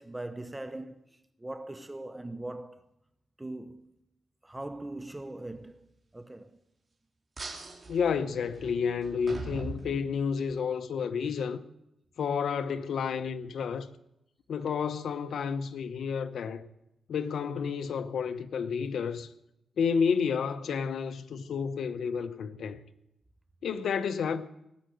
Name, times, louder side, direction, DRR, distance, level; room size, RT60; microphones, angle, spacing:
voice 1, 0.0-2.8 3.4-3.9 4.4-5.9 6.1-6.6, right 1 dB, 15° right, 0.8 m, -41 dB
sound 1, 7.4-10.6, right 3 dB, 30° right, 4.0 m, -42 dB
voice 2, 7.9-11.6 12.2-13.9 14.5-16.6 17.1-19.3 19.8-22.8 23.6-24.4, left 6 dB, 75° left, 0.8 m, -30 dB
19.0 x 7.7 x 9.1 m
cardioid pair, 85°, 0 cm